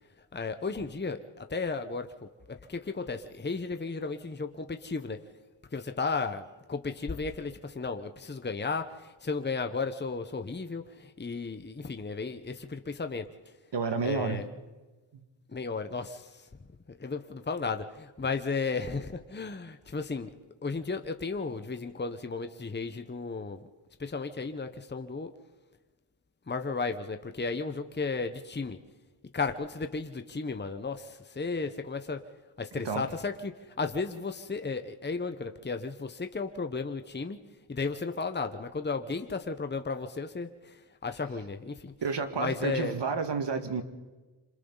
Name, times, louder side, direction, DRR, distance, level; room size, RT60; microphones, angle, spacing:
voice 1, 0.3-5.2 5.7-13.3 14.0-14.5 15.5-16.5 16.9-20.3 20.6-23.7 24.0-25.3 26.5-28.8 29.3-32.2 32.6-37.4 37.7-41.9 42.4-43.0, left 4 dB, 20° left, 8 dB, 1.1 m, -34 dB
voice 2, 13.7-14.4 15.1-15.2 32.8-33.0 42.0-43.8, right 5 dB, 60° right, 8 dB, 1.9 m, -30 dB
27.0 x 26.5 x 4.1 m, 1.2 s
cardioid pair, 70°, 48 cm